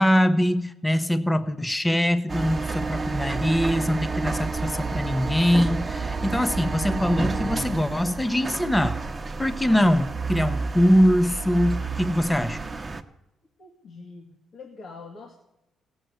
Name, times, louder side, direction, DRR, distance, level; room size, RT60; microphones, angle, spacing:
voice 1, 0.0-8.9 9.4-12.6, equal, 10° left, 12 dB, 0.9 m, -23 dB
sound 1, 2.3-13.0, right 4 dB, 25° right, 1.1 m, -30 dB
voice 2, 13.6-15.3, left 4 dB, 60° left, 0 dB, 2.3 m, -43 dB
16.5 x 7.8 x 9.4 m, 0.94 s
cardioid pair, 90°, 0 cm